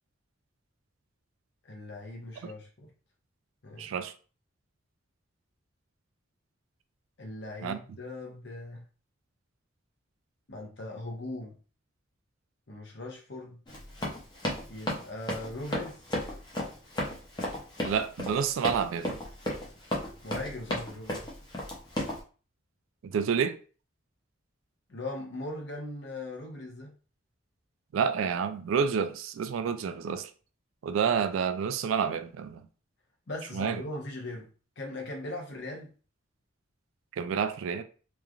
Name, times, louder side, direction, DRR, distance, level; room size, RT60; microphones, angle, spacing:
voice 1, 1.7-2.9 3.6-3.9 7.2-8.8 10.5-11.6 12.7-13.6 14.7-16.0 20.2-21.3 24.9-26.9 33.3-34.5 34.8-35.9, left 2 dB, 60° left, 0.8 m, -39 dB
voice 2, 3.8-4.1 7.6-7.8 17.8-19.2 23.0-23.6 27.9-30.3 30.8-32.6 33.5-33.8 37.1-37.8, right 6 dB, 85° right, 0.3 m, -29 dB
Run, 13.7-22.2, left 1 dB, 20° left, 0.6 m, -33 dB
3.0 x 2.4 x 2.3 m
head